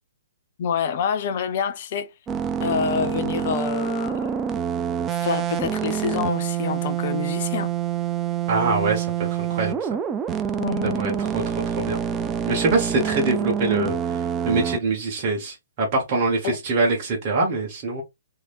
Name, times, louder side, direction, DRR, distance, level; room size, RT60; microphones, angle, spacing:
voice 1, 0.6-2.1 2.6-4.4 5.1-7.7 10.6-11.0 16.4-16.6, left 7 dB, 40° left, 0.5 m, -27 dB
sound 1, 2.3-14.8, right 8 dB, 15° right, 0.3 m, -26 dB
voice 2, 8.5-9.9 10.8-12.0 12.4-18.0, right 3 dB, 30° right, 1.0 m, -24 dB
3.2 x 2.7 x 2.3 m
figure-of-eight pair, 120°, 0 cm